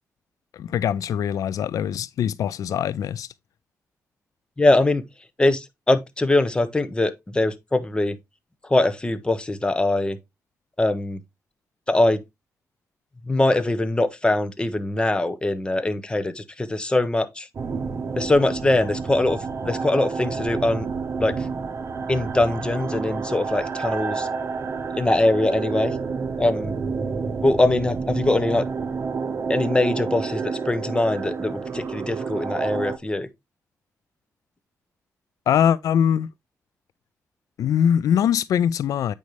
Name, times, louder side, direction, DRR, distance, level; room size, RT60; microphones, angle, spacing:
voice 1, 0.5-3.3 35.5-36.3 37.6-39.1, left 9 dB, 80° left, 0.3 m, -22 dB
voice 2, 4.6-5.0 5.4-8.2 8.7-10.2 10.8-11.2 11.9-12.2 13.2-17.5 18.2-20.9 21.2-21.5 22.1-24.3 24.9-26.0 26.4-26.7 27.4-28.7 29.5-33.3, left 2 dB, 15° left, 0.9 m, -22 dB
sound 1, 17.5-33.0, right 5 dB, 50° right, 0.9 m, -29 dB
8.4 x 5.3 x 3.1 m
cardioid pair, 95°, 6 cm